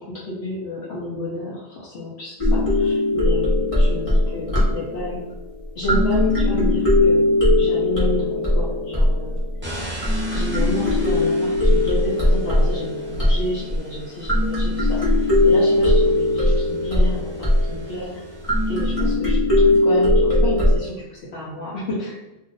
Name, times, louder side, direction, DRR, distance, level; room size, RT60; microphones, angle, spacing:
voice 1, 0.0-5.3 5.7-7.3 7.5-9.3 10.3-18.3 18.7-19.4 19.6-22.2, left 1 dB, 70° left, -7 dB, 1.0 m, -30 dB
sound 1, 2.4-5.3 5.8-9.6 10.0-13.8 14.2-18.2 18.4-20.8, left 1 dB, 30° left, 1.0 m, -19 dB
sound 2, 9.6-19.2, right 1 dB, 10° right, 0.7 m, -39 dB
2.6 x 2.4 x 3.8 m, 0.96 s
omnidirectional pair, 1.2 m